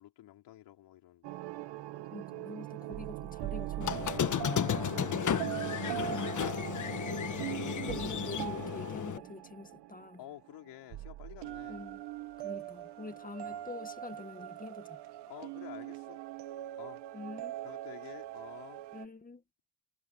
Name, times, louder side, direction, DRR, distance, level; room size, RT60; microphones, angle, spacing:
voice 1, 0.0-1.6 10.2-11.8 13.4-13.7 15.3-16.2 16.8-17.0 17.6-18.8, left 14 dB, 90° left, 5.0 m, -51 dB
sound 1, 1.2-10.6 10.9-19.1, right 14 dB, 90° right, 1.4 m, -41 dB
voice 2, 2.1-4.1 5.5-6.5 7.3-10.2 11.7-12.0 12.4-15.0 17.1-17.6 18.9-19.4, left 3 dB, 20° left, 2.0 m, -46 dB
Squeak, 3.8-9.2, left 9 dB, 50° left, 1.5 m, -33 dB
cardioid pair, 125°, 40 cm